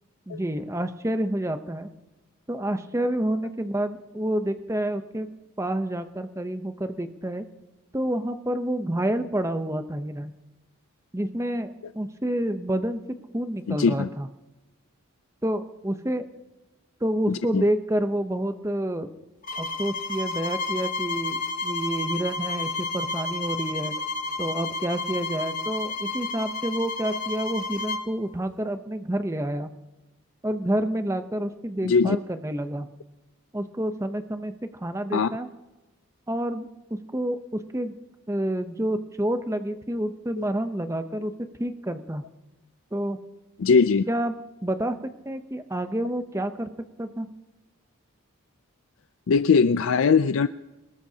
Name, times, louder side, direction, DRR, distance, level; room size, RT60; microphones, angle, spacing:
voice 1, 0.3-1.9 2.5-5.3 5.6-7.4 7.9-10.3 11.1-13.0 13.3-14.3 15.4-16.3 17.0-19.1 19.6-23.9 24.4-29.7 30.4-32.9 33.5-35.5 36.3-36.7 36.9-37.9 38.3-41.3 41.6-42.2 42.9-43.2 44.1-44.3 44.6-46.7 47.0-47.3, right 1 dB, 15° right, 9 dB, 0.7 m, -28 dB
voice 2, 13.7-14.1 17.3-17.7 31.8-32.2 35.1-35.3 40.4-40.5 43.6-44.0 49.3-50.5, left 5 dB, 65° left, 12 dB, 0.4 m, -20 dB
sound 1, 19.4-28.1, left 3 dB, 35° left, 1.1 m, -31 dB
23.0 x 20.0 x 2.8 m, 1.1 s
head